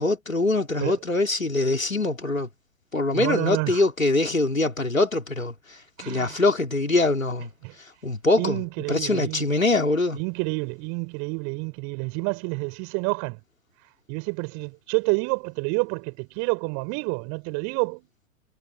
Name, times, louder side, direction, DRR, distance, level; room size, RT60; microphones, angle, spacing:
voice 1, 0.0-2.5 2.9-5.5 6.0-7.5 8.0-8.6 8.9-10.2, left 2 dB, 85° left, 4.7 m, -23 dB
voice 2, 3.1-3.8 6.0-6.4 7.6-7.8 8.4-9.5 10.2-13.4 14.1-18.1, right 36 dB, 40° right, 7.0 m, -29 dB
figure-of-eight pair, 100°, 39 cm